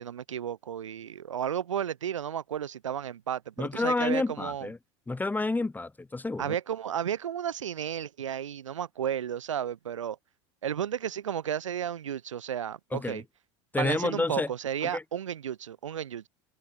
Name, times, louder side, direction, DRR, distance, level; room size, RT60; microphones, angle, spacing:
voice 1, 0.0-4.7 6.4-10.2 10.6-13.2 13.8-16.3, right 9 dB, 90° right, 2.2 m, -33 dB
voice 2, 3.6-4.8 5.1-6.5 12.9-13.2 13.7-14.5 14.9-15.0, left 3 dB, 10° left, 1.1 m, -29 dB
hypercardioid pair, 85°, 16 cm